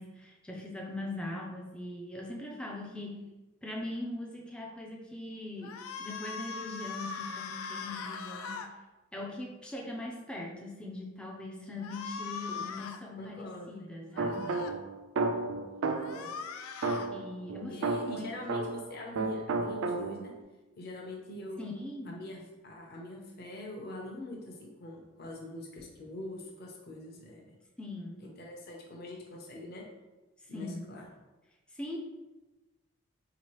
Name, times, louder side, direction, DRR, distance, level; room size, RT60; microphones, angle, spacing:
voice 1, 0.0-3.2 3.6-8.7 9.1-14.7 17.1-18.3 21.6-22.2 27.8-28.2 30.5-30.9 31.7-32.0, left 1 dB, 5° left, -1 dB, 0.4 m, -41 dB
sound 1, 5.6-8.7 11.8-13.0 14.1-14.7 15.9-17.1, left 5 dB, 85° left, 0.4 m, -40 dB
voice 2, 13.2-13.8 15.8-16.4 17.7-20.3 20.8-21.6 22.1-27.4 28.4-29.8 30.5-31.1, left 1 dB, 50° left, -1 dB, 0.7 m, -44 dB
sound 2, 14.2-16.3 16.8-18.9 19.2-20.4, right 3 dB, 70° right, 0.3 m, -32 dB
4.6 x 2.8 x 3.1 m, 1.1 s
head